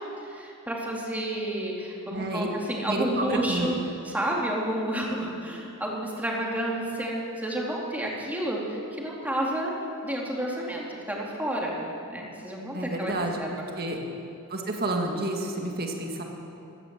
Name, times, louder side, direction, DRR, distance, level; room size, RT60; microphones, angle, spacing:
voice 1, 0.2-3.7 4.0-9.7 10.0-11.8 12.1-13.7, right 1 dB, 5° right, -3 dB, 2.5 m, -30 dB
voice 2, 2.1-2.5 2.9-3.7 12.7-13.4 13.8-14.0 14.5-16.2, right 2 dB, 45° right, 2 dB, 1.9 m, -30 dB
15.5 x 12.5 x 7.5 m, 2.8 s
head